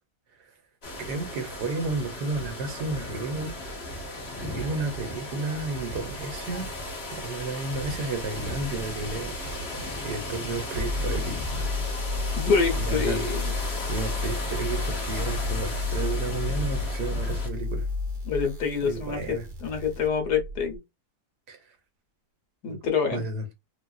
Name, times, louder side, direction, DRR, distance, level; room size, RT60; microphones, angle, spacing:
sound 1, 0.8-17.5, left 1 dB, 40° left, 1.5 m, -35 dB
voice 1, 1.0-3.5 4.4-6.7 7.1-9.3 9.7-11.4 12.8-13.3 13.9-17.9 18.8-19.5 21.5-21.6 22.7-22.8 23.1-23.4, right 3 dB, 70° right, 1.5 m, -32 dB
sound 2, 6.3-20.8, left 3 dB, 35° right, 0.9 m, -32 dB
voice 2, 12.4-13.4 18.2-20.8 22.6-23.2, left 5 dB, 70° left, 1.7 m, -26 dB
3.8 x 2.4 x 2.4 m
omnidirectional pair, 1.8 m